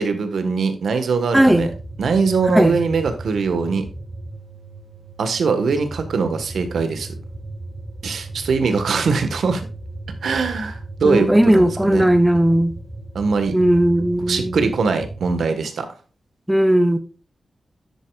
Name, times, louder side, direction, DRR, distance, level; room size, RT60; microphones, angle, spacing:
voice 1, 0.0-1.7 2.0-3.9 5.2-7.1 8.0-9.6 10.2-12.1 13.1-13.6 14.3-15.9, right 4 dB, 85° right, 1.4 m, -21 dB
voice 2, 1.3-1.7 2.5-2.8 11.0-12.7 13.5-14.7 16.5-17.0, right 1 dB, 5° right, 0.7 m, -16 dB
sound 1, 1.3-15.4, right 2 dB, 50° right, 3.5 m, -35 dB
9.9 x 8.0 x 2.4 m
wide cardioid pair, 145°, 0 cm